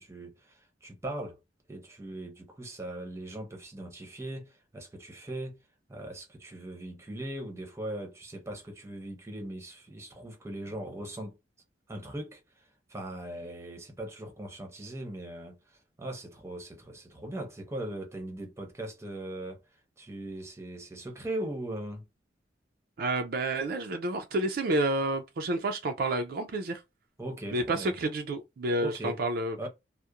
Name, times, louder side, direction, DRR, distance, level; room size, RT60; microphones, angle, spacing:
voice 1, 0.0-1.4 1.7-5.6 5.9-11.4 11.9-22.0 27.2-27.9 28.8-29.2 29.6-29.7, right 1 dB, 15° right, 0.7 m, -39 dB
voice 2, 23.0-26.8 27.5-29.6, right 2 dB, 55° right, 0.4 m, -29 dB
2.8 x 2.0 x 2.3 m
head